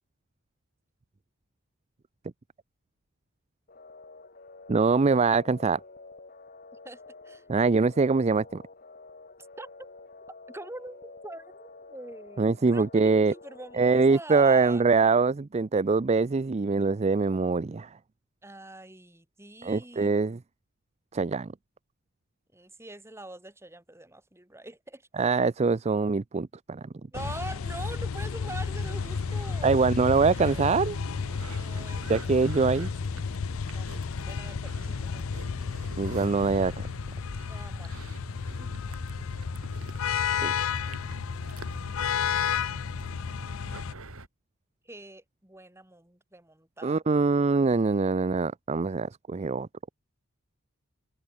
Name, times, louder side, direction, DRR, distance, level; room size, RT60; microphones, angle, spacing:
sound 1, 3.7-13.8, left 3 dB, 45° left, 3.7 m, -49 dB
voice 1, 4.7-5.8 7.5-8.6 12.4-13.3 13.7-18.0 19.6-20.4 21.1-21.5 25.2-26.8 29.6-31.0 32.1-32.9 36.0-36.9 40.4-40.5 46.8-49.7, right 4 dB, 30° right, 0.4 m, -24 dB
voice 2, 6.8-7.4 9.6-9.7 10.5-14.8 18.4-20.4 22.5-25.3 27.1-29.9 30.2-30.6 31.5-32.1 33.7-33.9 34.2-35.2 37.4-37.9 38.6-38.7 44.9-47.0, right 2 dB, 10° right, 3.5 m, -44 dB
sound 2, 27.1-43.9, left 6 dB, 65° left, 0.5 m, -32 dB
sound 3, 28.6-44.3, right 1 dB, 80° right, 4.4 m, -45 dB
open air
head